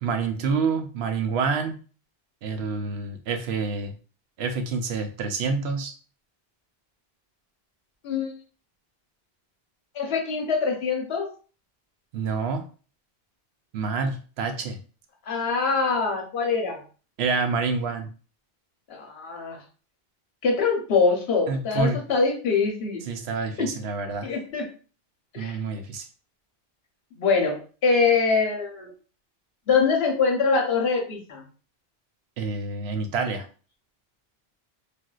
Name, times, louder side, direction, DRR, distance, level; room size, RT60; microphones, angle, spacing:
voice 1, 0.0-1.8 2.4-3.9 4.4-5.9 12.1-12.6 13.7-14.8 17.2-18.1 21.5-22.0 23.1-24.3 25.4-26.0 32.4-33.5, right 4 dB, 90° right, 6 dB, 0.9 m, -27 dB
voice 2, 9.9-11.3 15.3-16.8 18.9-19.6 20.4-23.0 23.6-23.7 24.2-24.7 25.3-25.6 27.2-28.9 29.7-31.4, left 4 dB, 80° left, 2 dB, 1.0 m, -24 dB
3.3 x 2.6 x 2.3 m, 0.37 s
omnidirectional pair, 1.0 m